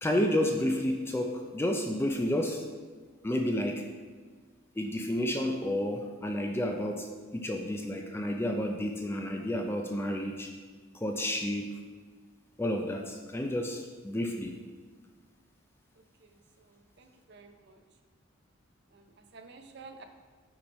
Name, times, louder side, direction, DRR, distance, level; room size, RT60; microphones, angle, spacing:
voice 1, 0.0-2.6 3.2-3.8 4.8-7.1 7.3-10.5 10.9-11.7 12.6-14.5, left 1 dB, 10° left, 3 dB, 0.3 m, -30 dB
voice 2, 16.2-17.8 18.9-20.0, right 4 dB, 55° right, 6 dB, 0.6 m, -52 dB
6.0 x 4.7 x 4.1 m, 1.5 s
head